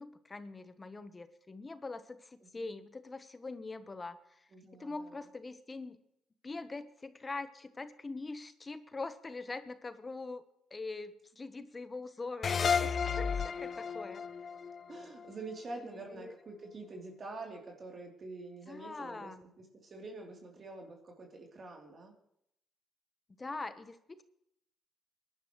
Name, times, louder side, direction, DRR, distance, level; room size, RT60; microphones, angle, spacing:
voice 1, 0.0-4.5 4.8-6.0 6.4-10.4 10.7-14.2 15.8-16.3 18.7-19.5 23.4-24.2, left 3 dB, 25° left, 11 dB, 1.0 m, -43 dB
voice 2, 4.5-5.2 14.9-22.1, right 3 dB, 45° right, 0 dB, 3.3 m, -46 dB
sound 1, 12.4-15.7, left 6 dB, 45° left, 0.6 m, -33 dB
22.0 x 11.0 x 3.2 m, 0.76 s
cardioid pair, 80°, 0 cm